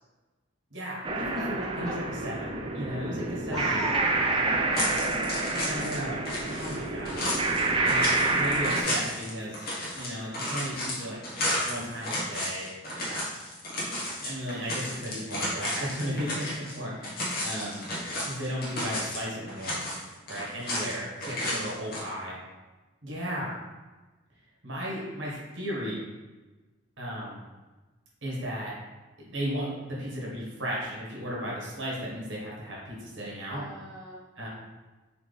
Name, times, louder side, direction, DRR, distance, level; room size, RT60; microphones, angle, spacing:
voice 1, 0.7-4.0 5.6-7.3 7.8-9.7 10.0-11.2 11.6-12.7 13.0-13.2 14.2-17.9 18.2-19.8 20.3-22.4 23.0-23.5 24.6-26.0 27.0-27.4 28.2-28.7 29.2-33.6 34.4-34.5, equal, 60° right, -5 dB, 1.3 m, -35 dB
sound 1, 1.0-8.8, right 2 dB, 25° right, 0.3 m, -28 dB
voice 2, 3.5-5.0 7.8-8.0 21.2-21.8 33.5-34.2, equal, ahead, -8 dB, 0.8 m, -39 dB
sound 2, 4.7-6.0 6.3-16.8 17.0-19.2 19.5-20.9 21.2-22.0, left 1 dB, 45° left, 1.1 m, -33 dB
4.0 x 3.0 x 3.3 m, 1.2 s
head